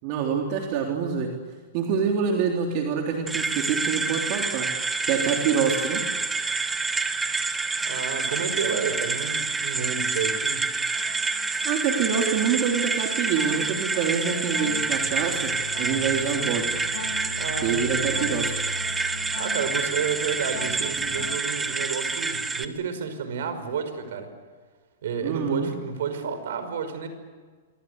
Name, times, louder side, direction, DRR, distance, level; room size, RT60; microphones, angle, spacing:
voice 1, 0.0-1.3 1.7-4.7 5.0-6.0 6.6-6.7 7.1-7.2 11.6-16.7 17.6-18.5 25.2-25.7, right 6 dB, 50° right, 1 dB, 3.7 m, -26 dB
sound 1, 3.3-22.6, right 4 dB, 15° right, 1.8 m, -28 dB
voice 2, 7.8-10.8 17.4-18.3 19.4-24.3 25.0-27.1, right 6 dB, 70° right, 10 dB, 5.3 m, -31 dB
sound 2, 7.9-9.3 9.7-21.3, left 4 dB, 65° left, 7.1 m, -39 dB
27.5 x 24.0 x 8.2 m, 1.5 s
hypercardioid pair, 115°, 0 cm